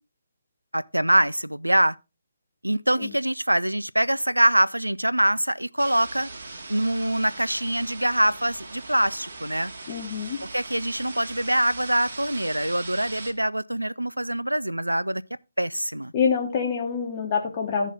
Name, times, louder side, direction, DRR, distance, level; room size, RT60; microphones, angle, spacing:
voice 1, 0.7-2.0 2.6-6.3 6.7-9.7 10.5-15.2 15.6-16.1, right 1 dB, 85° right, 0.5 m, -24 dB
sound 1, 5.8-13.3, right 3 dB, 55° right, 2.3 m, -40 dB
voice 2, 9.9-10.4 16.1-17.9, left 6 dB, 30° left, 2.0 m, -26 dB
15.0 x 6.4 x 3.8 m
figure-of-eight pair, 140°, 0 cm